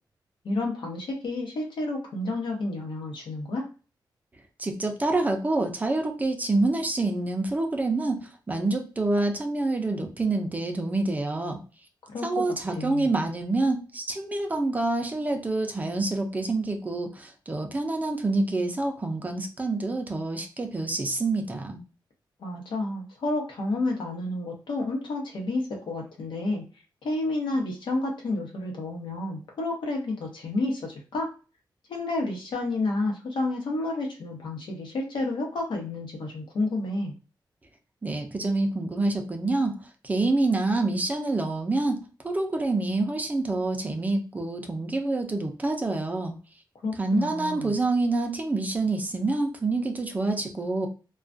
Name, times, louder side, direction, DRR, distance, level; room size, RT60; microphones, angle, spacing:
voice 1, 0.4-3.7 12.1-12.4 12.7-13.1 22.4-26.6 27.0-31.3 31.9-37.1 46.8-47.7, left 2 dB, 80° left, 1 dB, 0.8 m, -30 dB
voice 2, 4.6-8.2 8.5-11.6 12.2-21.8 38.0-39.8 40.0-46.4 47.0-50.9, right 2 dB, 20° right, 4 dB, 0.4 m, -27 dB
2.3 x 2.2 x 2.5 m, 0.35 s
wide cardioid pair, 150°, 8 cm